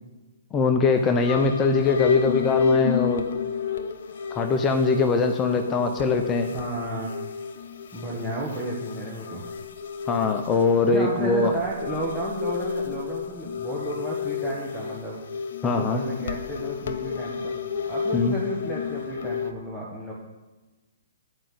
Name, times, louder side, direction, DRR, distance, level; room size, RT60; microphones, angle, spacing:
voice 1, 0.5-3.3 4.3-6.5 10.1-11.5 15.6-16.0 18.1-18.3, left 4 dB, 20° left, 5 dB, 0.7 m, -22 dB
sound 1, 0.9-19.5, left 6 dB, 65° left, 0.8 m, -31 dB
voice 2, 6.5-7.1 7.9-9.4 10.8-15.2 15.6-17.5 17.9-20.1, right 1 dB, 5° right, -7 dB, 1.6 m, -32 dB
9.2 x 5.0 x 7.8 m, 1.2 s
hypercardioid pair, 130°, 0 cm